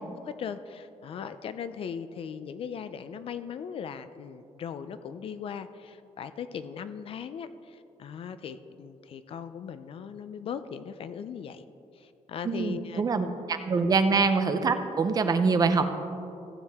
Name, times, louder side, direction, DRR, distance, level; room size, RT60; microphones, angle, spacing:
voice 1, 0.2-11.6 11.9-13.4 13.8-14.0, left 7 dB, 50° left, 12 dB, 0.4 m, -39 dB
voice 2, 12.5-15.9, right 4 dB, 30° right, 8 dB, 0.6 m, -25 dB
15.5 x 8.3 x 3.5 m, 2.7 s
cardioid pair, 170°, 12 cm